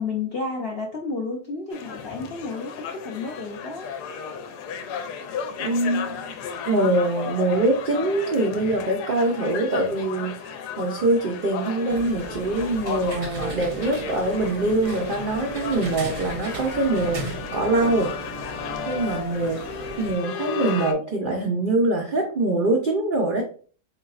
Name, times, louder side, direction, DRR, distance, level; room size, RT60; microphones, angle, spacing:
voice 1, 0.0-3.9, left 4 dB, 60° left, -1 dB, 0.6 m, -31 dB
sound 1, 1.7-20.9, left 6 dB, 85° left, 1.2 m, -34 dB
voice 2, 5.6-6.4 6.7-18.1 18.9-19.6 20.0-23.4, right 2 dB, 80° right, 0 dB, 0.4 m, -24 dB
sound 2, 11.9-20.1, right 3 dB, 50° right, 0.7 m, -36 dB
3.9 x 3.4 x 2.4 m, 0.41 s
omnidirectional pair, 1.7 m